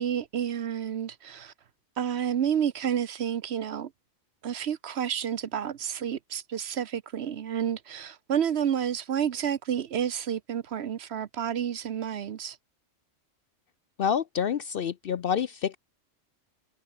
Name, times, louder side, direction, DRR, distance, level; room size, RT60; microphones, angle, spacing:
voice 1, 0.0-1.5 2.0-3.9 4.4-12.6, right 9 dB, 60° right, 1.0 m, -30 dB
voice 2, 14.0-15.8, left 7 dB, 55° left, 0.7 m, -28 dB
omnidirectional pair, 1.3 m